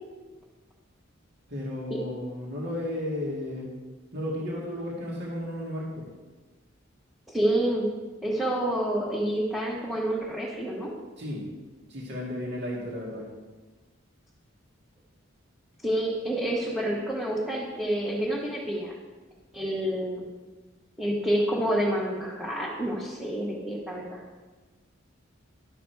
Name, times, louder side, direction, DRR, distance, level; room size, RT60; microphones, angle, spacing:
voice 1, 1.5-3.7 4.1-6.1 11.2-11.4 11.9-13.3, left 1 dB, 55° right, -4 dB, 2.0 m, -33 dB
voice 2, 7.3-7.9 8.2-10.9 15.8-18.9 19.5-20.2 21.0-24.2, right 1 dB, ahead, -6 dB, 1.3 m, -28 dB
11.5 x 6.2 x 4.6 m, 1.3 s
head